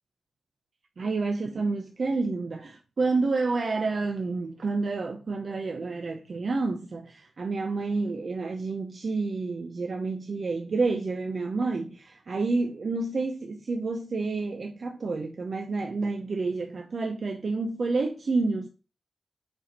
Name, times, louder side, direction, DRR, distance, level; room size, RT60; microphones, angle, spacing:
voice 1, 1.0-18.7, right 3 dB, 55° right, 0.7 m, -29 dB
6.8 x 4.3 x 4.2 m
cardioid pair, 80°, 0 cm